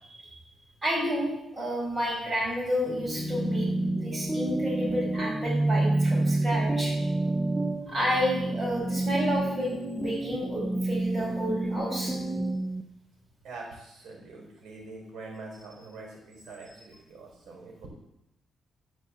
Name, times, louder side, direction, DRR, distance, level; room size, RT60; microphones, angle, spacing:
voice 1, 0.8-3.7 4.0-7.0 7.9-12.2, equal, 25° right, -2 dB, 4.6 m, -30 dB
sound 1, 2.9-12.8, right 2 dB, 5° right, 0.7 m, -29 dB
voice 2, 13.4-17.9, right 3 dB, 85° right, -2 dB, 4.2 m, -44 dB
12.5 x 5.4 x 7.4 m, 0.85 s
cardioid pair, 140°, 0 cm